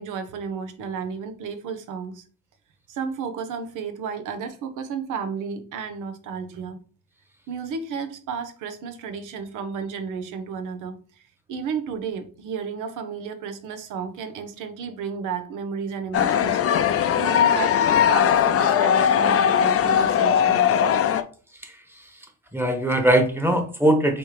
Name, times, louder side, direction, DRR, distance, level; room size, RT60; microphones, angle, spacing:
voice 1, 0.0-2.2 2.9-6.8 7.5-20.8, right 6 dB, 85° right, 8 dB, 0.8 m, -33 dB
sound 1, 16.1-21.2, left 9 dB, 50° left, 0.5 m, -19 dB
voice 2, 21.6-22.1 22.5-24.2, right 1 dB, 5° right, 5 dB, 1.1 m, -21 dB
3.5 x 3.1 x 4.6 m, 0.39 s
cardioid pair, 90°, 30 cm